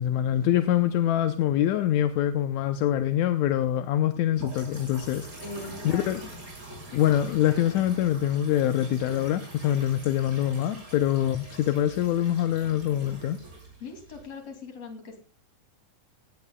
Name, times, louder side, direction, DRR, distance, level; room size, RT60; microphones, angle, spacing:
voice 1, 0.0-5.3 5.9-6.2 6.9-13.4, left 11 dB, 75° left, 1.9 m, -24 dB
sound 1, 4.3-14.5, right 1 dB, 30° right, 7.1 m, -44 dB
voice 2, 5.4-6.4 13.8-15.2, left 3 dB, 50° left, 3.8 m, -41 dB
17.0 x 16.5 x 2.3 m
omnidirectional pair, 3.7 m